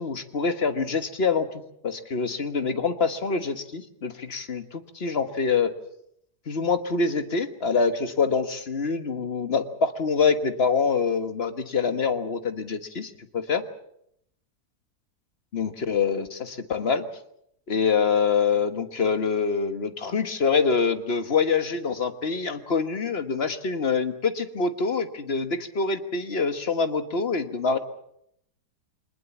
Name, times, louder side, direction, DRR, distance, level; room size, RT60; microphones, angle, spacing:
voice 1, 0.0-5.7 6.5-13.6 15.5-17.1 17.7-27.8, left 5 dB, 40° left, 9 dB, 1.6 m, -25 dB
24.0 x 20.5 x 7.2 m, 0.74 s
omnidirectional pair, 1.7 m